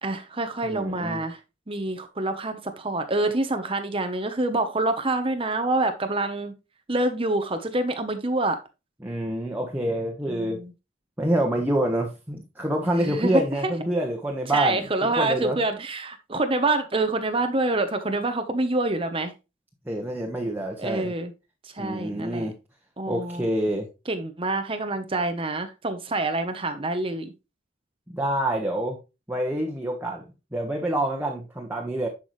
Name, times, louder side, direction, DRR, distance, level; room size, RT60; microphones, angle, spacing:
voice 1, 0.0-1.4 1.7-6.5 6.9-8.6 10.3-10.7 13.0-13.7 14.5-19.3 20.8-21.3 21.6-22.5 23.0-23.5 24.1-27.3, right 2 dB, 30° right, 7 dB, 1.0 m, -26 dB
voice 2, 0.6-1.2 9.0-10.6 11.2-15.6 19.9-21.1 21.8-22.6 23.1-23.9 28.1-29.0 29.3-30.2 30.5-32.1, right 1 dB, 10° right, 0 dB, 1.4 m, -27 dB
11.0 x 6.1 x 3.2 m, 0.27 s
head